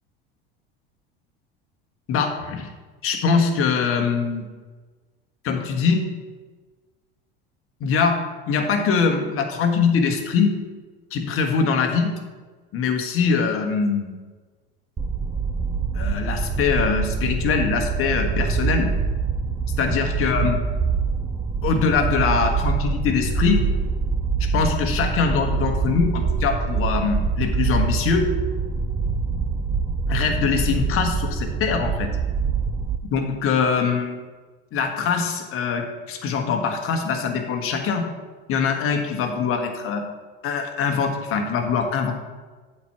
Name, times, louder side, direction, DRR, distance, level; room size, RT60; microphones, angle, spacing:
voice 1, 2.1-2.7 3.0-4.4 5.4-6.1 7.8-8.2 8.5-10.5 11.1-12.1 12.7-14.1 15.9-18.9 19.8-20.6 21.6-23.6 24.5-28.3 30.1-32.1 33.1-34.2 34.7-38.1 38.5-40.0 40.4-42.1, left 5 dB, 50° left, 4 dB, 1.4 m, -23 dB
sound 1, 15.0-33.0, right 5 dB, 15° right, 0.5 m, -25 dB
8.1 x 4.5 x 6.0 m, 1.3 s
hypercardioid pair, 90°, 29 cm